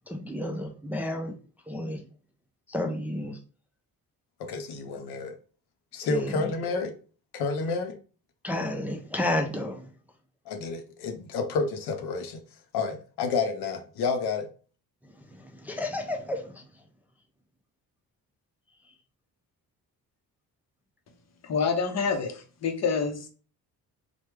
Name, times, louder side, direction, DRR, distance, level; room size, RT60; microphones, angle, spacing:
voice 1, 0.1-1.3 1.7-2.0 2.7-3.4 6.1-6.5 8.4-9.9 15.4-16.6, left 1 dB, 5° right, 0.3 m, -31 dB
voice 2, 4.4-5.3 5.9-6.9 7.3-8.0 10.5-12.4 12.7-14.5, left 4 dB, 85° left, 0.6 m, -30 dB
voice 3, 21.4-23.3, left 5 dB, 45° left, 0.7 m, -27 dB
3.2 x 2.1 x 3.2 m
cardioid pair, 105°, 37 cm